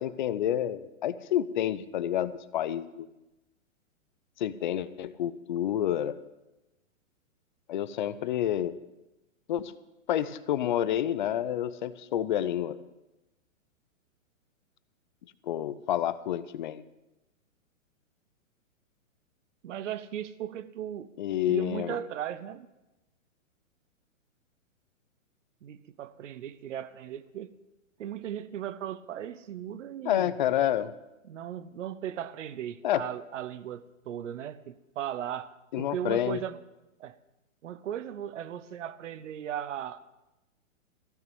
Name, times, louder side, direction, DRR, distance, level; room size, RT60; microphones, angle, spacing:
voice 1, 0.0-3.1 4.4-6.2 7.7-8.7 9.5-9.7 10.1-12.8 15.4-16.8 21.2-22.0 30.0-30.9 32.8-33.0 35.7-36.4, left 11 dB, 35° left, 0.5 m, -29 dB
voice 2, 19.6-21.1 21.5-22.7 25.6-27.5 28.0-30.3 31.2-35.5 35.8-36.6 37.0-37.2 37.6-40.0, right 10 dB, 65° right, 0.9 m, -37 dB
15.5 x 5.9 x 9.1 m
hypercardioid pair, 145°, 40 cm